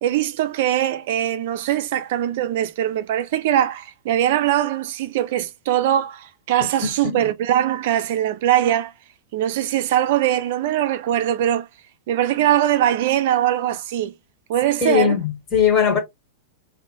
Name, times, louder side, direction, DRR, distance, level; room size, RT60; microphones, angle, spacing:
voice 1, 0.0-8.9 9.3-11.7 12.1-14.1 14.5-15.2, right 12 dB, 55° right, 0.4 m, -21 dB
voice 2, 6.8-7.3 14.8-16.0, left 7 dB, 35° left, 1.3 m, -20 dB
2.5 x 2.1 x 2.8 m
figure-of-eight pair, 95°, 0 cm